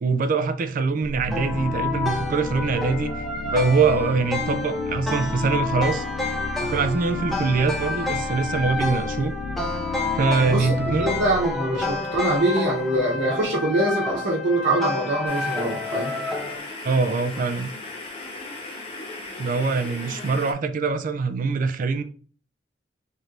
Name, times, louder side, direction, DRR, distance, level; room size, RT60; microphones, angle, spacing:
voice 1, 0.0-3.1 3.5-6.0 6.6-9.3 10.2-11.1 16.8-17.7 19.4-22.0, right 4 dB, 45° right, 0.3 m, -23 dB
sound 1, 1.0-12.8, left 4 dB, 70° left, 0.4 m, -34 dB
sound 2, 1.3-16.6, left 3 dB, ahead, 0.6 m, -29 dB
voice 2, 10.4-16.1, right 1 dB, 80° right, 0.9 m, -24 dB
sound 3, 15.3-20.5, left 2 dB, 35° left, 0.8 m, -37 dB
3.2 x 2.5 x 4.3 m
head